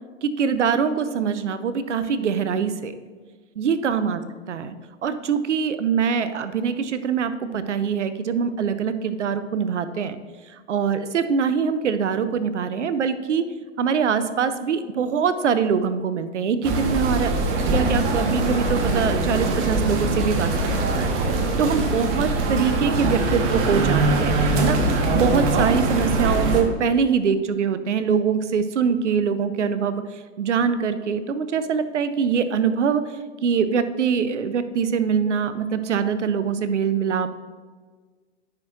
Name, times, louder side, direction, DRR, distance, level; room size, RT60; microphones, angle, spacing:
voice 1, 0.2-2.9 3.6-4.7 5.0-10.2 10.5-13.4 13.8-17.3 17.7-21.1 21.6-37.3, right 6 dB, 85° right, 12 dB, 0.6 m, -23 dB
sound 1, 16.6-26.6, right 2 dB, 35° right, 1.2 m, -22 dB
10.5 x 5.9 x 2.4 m, 1.5 s
figure-of-eight pair, 100°, 35 cm